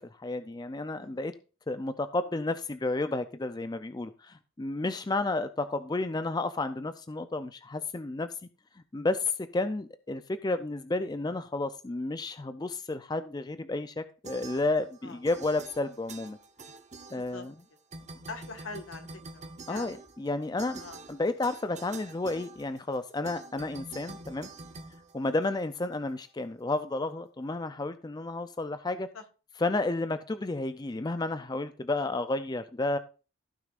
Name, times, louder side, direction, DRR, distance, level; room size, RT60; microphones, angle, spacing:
voice 1, 0.0-1.3 1.7-8.3 8.9-16.4 17.1-17.5 19.7-20.8 21.1-24.5 25.1-29.1 29.6-33.0, left 2 dB, 20° left, 11 dB, 0.4 m, -31 dB
sound 1, 14.2-15.0 15.2-17.6 17.9-25.8, right 3 dB, 35° right, 0.9 m, -46 dB
voice 2, 17.1-17.5 18.3-19.1 19.3-20.0 20.8-21.0 29.1-29.2, left 3 dB, 75° left, 6 dB, 1.5 m, -43 dB
15.5 x 6.2 x 2.5 m, 0.35 s
head